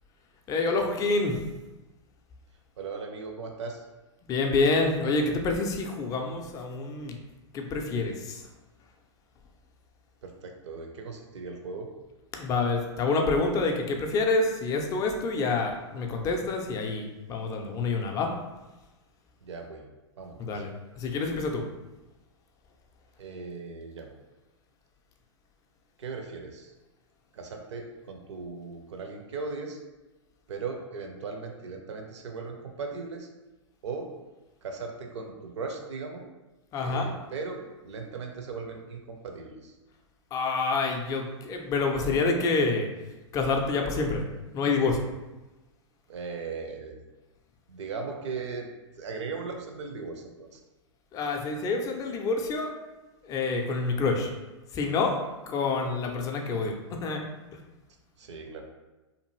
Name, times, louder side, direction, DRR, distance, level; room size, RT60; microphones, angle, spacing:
voice 1, 0.5-1.3 4.3-7.2 7.5-8.4 12.4-18.3 20.4-20.7 21.0-21.6 36.7-37.1 40.3-42.9 43.3-44.2 44.5-45.0 51.1-52.7 53.3-54.3 54.7-55.2 55.5-57.2, left 3 dB, 20° left, 2 dB, 0.4 m, -27 dB
voice 2, 2.8-3.9 10.2-11.9 19.4-19.8 20.2-20.6 23.2-24.1 26.0-26.7 27.3-29.8 30.5-33.3 33.8-34.1 34.6-36.2 36.8-39.8 46.1-47.0 47.7-48.7 49.0-50.6 56.3-56.5 58.2-58.6, right 4 dB, 65° right, 3 dB, 0.6 m, -38 dB
2.6 x 2.4 x 3.0 m, 1.1 s
figure-of-eight pair, 110°, 16 cm